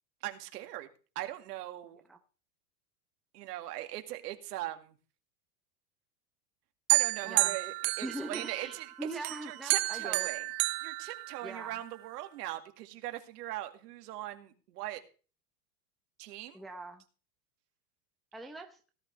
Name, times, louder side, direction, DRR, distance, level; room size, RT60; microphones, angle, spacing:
voice 1, 0.2-0.9 1.2-2.0 3.3-4.9 6.9-8.9 9.2-10.4 10.8-15.0 16.2-16.6, right 15 dB, 70° right, 6 dB, 2.4 m, -40 dB
sound 1, 6.9-8.8 9.2-11.8, right 23 dB, 40° right, 0.6 m, -31 dB
voice 2, 8.0-10.3 11.4-11.7 16.5-17.0 18.3-18.8, right 2 dB, ahead, 3 dB, 0.8 m, -41 dB
18.0 x 11.5 x 3.4 m, 0.36 s
supercardioid pair, 145°, 48 cm